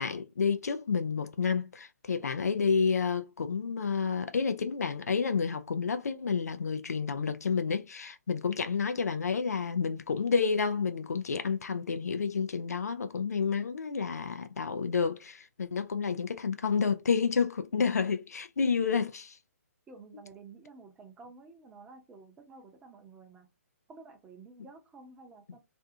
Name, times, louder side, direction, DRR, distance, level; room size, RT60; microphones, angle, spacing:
voice 1, 0.0-19.4, left 5 dB, 85° left, 0.4 m, -30 dB
voice 2, 19.9-23.5 23.9-25.6, right 4 dB, 15° right, 0.7 m, -51 dB
2.5 x 2.3 x 2.7 m
hypercardioid pair, 135°, 8 cm